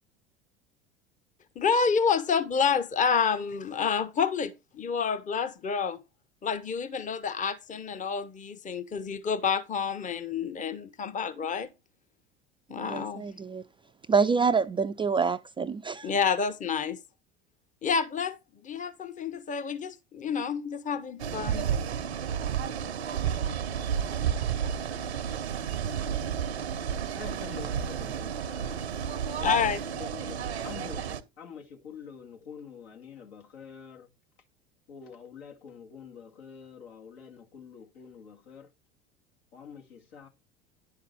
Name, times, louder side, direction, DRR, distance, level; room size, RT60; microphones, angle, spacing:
voice 1, 1.6-6.0 6.4-11.7 12.7-13.3 16.0-17.0 17.8-21.7 29.4-29.8, left 6 dB, 25° left, 0.9 m, -29 dB
voice 2, 12.8-13.6 14.1-16.1, right 5 dB, 15° right, 0.4 m, -27 dB
sound 1, 21.2-31.2, right 8 dB, 85° right, 0.8 m, -31 dB
voice 3, 27.1-28.8 29.4-34.1 34.9-38.7 39.5-40.3, left 6 dB, 75° left, 2.1 m, -46 dB
10.0 x 5.7 x 4.1 m
hypercardioid pair, 75°, 32 cm